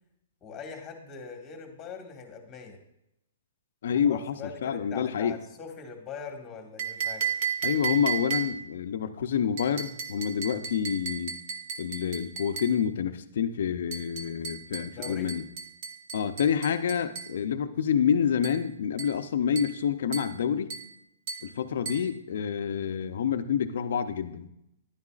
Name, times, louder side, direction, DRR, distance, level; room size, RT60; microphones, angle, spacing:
voice 1, 0.4-2.8 3.9-7.3 14.8-15.3, left 5 dB, 20° left, 3 dB, 1.6 m, -42 dB
voice 2, 3.8-4.3 4.6-5.4 7.6-11.3 11.8-15.4 16.1-20.7 21.4-24.5, left 8 dB, 70° left, 8 dB, 0.6 m, -28 dB
sound 1, 6.8-8.8 9.6-12.8 13.9-17.4 18.4-18.7 19.0-19.2 19.6-19.8 20.1-20.4 20.7-20.9 21.3-21.5 21.9-22.1, right 7 dB, 45° right, 1.1 m, -35 dB
10.5 x 9.5 x 2.4 m, 0.81 s
hypercardioid pair, 145°, 0 cm